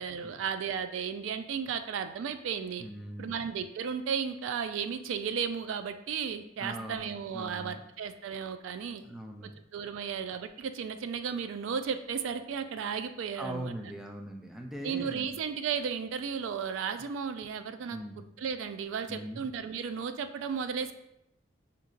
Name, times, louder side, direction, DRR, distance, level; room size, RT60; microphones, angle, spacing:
voice 1, 0.0-2.8 3.2-9.0 9.7-13.7 14.8-18.0 18.4-20.9, right 6 dB, 85° right, 10 dB, 0.3 m, -34 dB
voice 2, 2.8-3.4 6.6-7.1 7.3-7.8 9.0-9.5 13.3-15.3 17.9-18.2 19.1-19.4, right 1 dB, 5° right, 2 dB, 0.3 m, -40 dB
5.1 x 2.8 x 2.4 m, 0.81 s
head